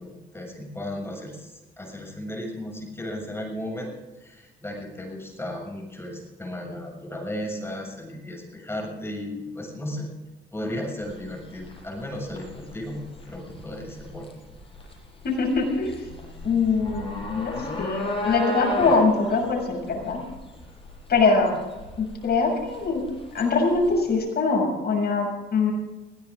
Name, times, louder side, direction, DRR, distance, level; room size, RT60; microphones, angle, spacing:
voice 1, 0.0-10.1 10.5-14.3, left 1 dB, 10° left, 0 dB, 7.0 m, -35 dB
sound 1, 11.0-24.2, left 1 dB, 25° left, 6.8 m, -36 dB
voice 2, 15.2-16.0 16.4-20.2 21.1-21.5 22.0-23.0 23.3-25.7, left 4 dB, 55° left, 1 dB, 7.0 m, -23 dB
22.0 x 16.5 x 3.7 m, 1.1 s
cardioid pair, 90°, 20 cm